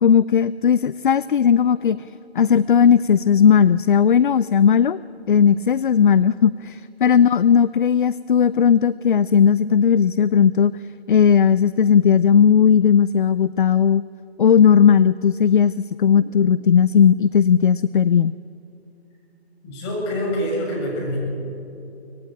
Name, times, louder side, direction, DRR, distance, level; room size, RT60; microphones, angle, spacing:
voice 1, 0.0-2.0 2.4-5.0 5.3-10.7 11.1-14.0 14.4-15.7 16.0-18.4, left 7 dB, 50° left, 17 dB, 0.5 m, -16 dB
voice 2, 19.6-21.2, equal, 25° left, -1 dB, 7.3 m, -25 dB
24.5 x 18.5 x 9.0 m, 2.7 s
figure-of-eight pair, 150°, 33 cm